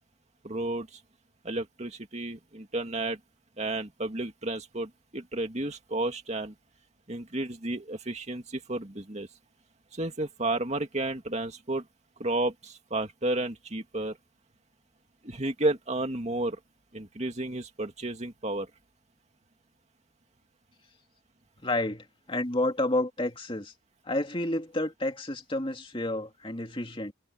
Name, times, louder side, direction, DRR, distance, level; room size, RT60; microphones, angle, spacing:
voice 1, 0.4-1.0 1.4-3.2 3.6-6.5 7.1-9.3 9.9-11.8 12.2-14.2 15.2-16.6 16.9-18.7, right 2 dB, 35° right, 2.4 m, -32 dB
voice 2, 21.6-23.7 24.0-27.1, left 1 dB, 25° left, 2.7 m, -30 dB
head